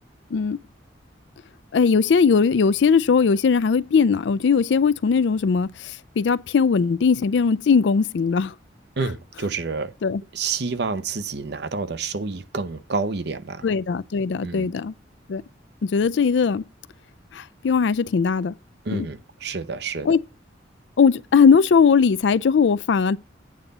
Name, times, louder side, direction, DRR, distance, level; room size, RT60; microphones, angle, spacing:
voice 1, 1.7-8.5 10.0-10.2 13.6-14.9 15.3-15.4 15.8-16.6 17.3-18.5 18.9-19.1 20.0-20.2 21.0-23.2, left 5 dB, 70° left, 0.4 m, -19 dB
voice 2, 9.0-9.9 10.3-13.7 14.4-14.7 18.8-20.2, right 4 dB, 60° right, 0.7 m, -29 dB
8.8 x 4.0 x 6.6 m
head